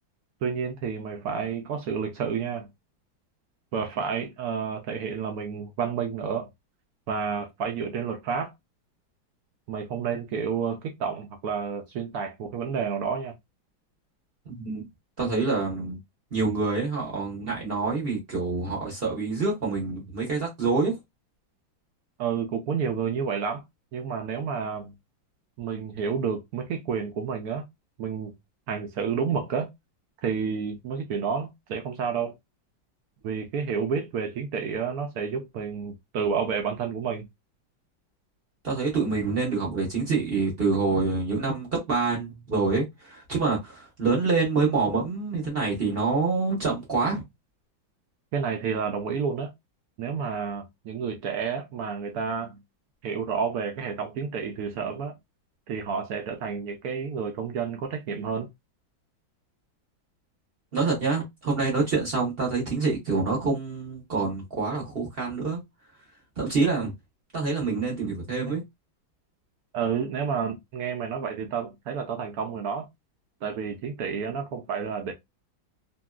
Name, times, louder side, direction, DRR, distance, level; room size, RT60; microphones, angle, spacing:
voice 1, 0.4-2.7 3.7-6.5 7.1-8.5 9.7-13.3 22.2-23.6 23.9-24.9 25.6-27.6 28.0-28.3 28.7-29.7 30.2-32.3 33.2-37.3 48.3-49.5 50.0-52.6 53.0-55.1 55.7-58.5 69.7-72.9 73.4-75.1, right 6 dB, 75° right, 0.8 m, -30 dB
voice 2, 14.5-14.9 15.2-16.0 16.3-21.0 38.6-47.2 60.7-65.6 66.4-66.9 67.3-68.6, right 4 dB, 40° right, 0.9 m, -26 dB
2.9 x 2.6 x 2.3 m
omnidirectional pair, 2.1 m